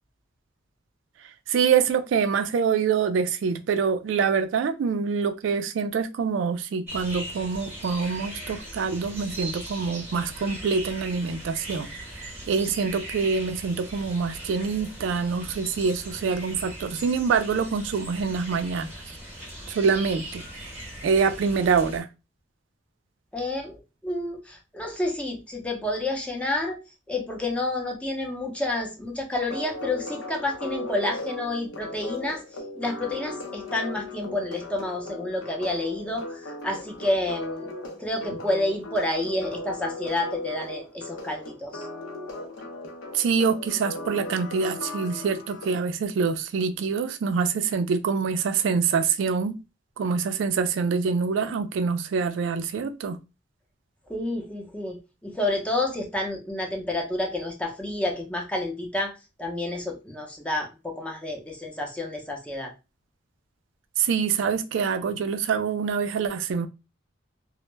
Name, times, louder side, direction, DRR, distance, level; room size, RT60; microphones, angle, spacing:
voice 1, 1.5-11.9 12.2-18.9 19.7-20.4 21.0-22.1 43.1-49.6 50.0-53.2 64.0-66.7, right 5 dB, 70° right, 0.3 m, -25 dB
sound 1, 6.9-22.0, right 1 dB, 10° right, 0.9 m, -39 dB
voice 2, 23.3-26.8 27.1-32.4 32.7-37.7 38.0-41.9 54.1-55.0 55.2-59.1 59.4-62.7, left 2 dB, 5° left, 0.5 m, -29 dB
sound 2, 29.5-45.7, left 2 dB, 80° left, 0.6 m, -37 dB
2.1 x 2.0 x 3.1 m
head